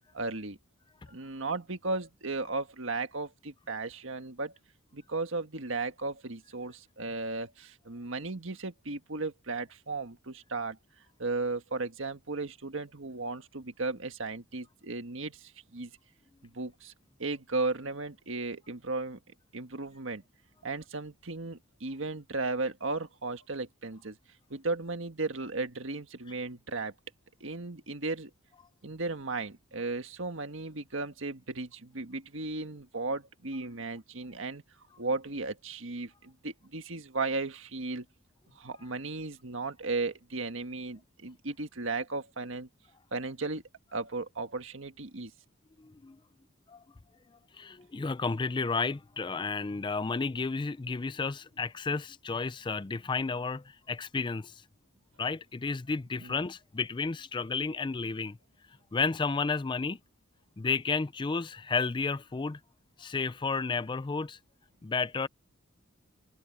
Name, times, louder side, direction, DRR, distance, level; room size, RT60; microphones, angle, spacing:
voice 1, 0.1-0.6 1.1-4.5 4.9-10.8 11.2-15.9 16.4-16.9 17.2-19.2 19.5-20.2 20.6-24.2 24.5-26.9 27.4-28.3 28.8-34.6 35.0-38.0 38.5-42.7 43.1-43.6 43.9-45.3 56.2-56.3, right 3 dB, 70° right, 1.7 m, -35 dB
voice 2, 45.8-46.2 46.7-46.8 47.5-54.6 55.2-58.4 58.9-60.0 60.6-62.6 63.0-64.4 64.8-65.3, left 4 dB, 25° left, 0.4 m, -32 dB
head